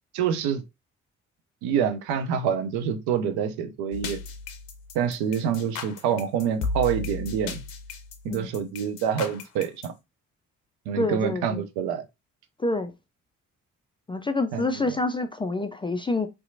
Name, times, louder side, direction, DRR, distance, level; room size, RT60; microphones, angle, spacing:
voice 1, 0.1-0.6 1.6-4.2 4.9-7.6 8.2-9.9 10.9-12.0 14.5-15.0, right 8 dB, 70° right, 0.6 m, -27 dB
sound 1, 3.9-9.9, left 4 dB, 80° left, 0.5 m, -34 dB
voice 2, 11.0-11.6 12.6-12.9 14.1-16.3, left 2 dB, 15° left, 0.3 m, -27 dB
2.8 x 2.2 x 2.5 m
hypercardioid pair, 40°, 39 cm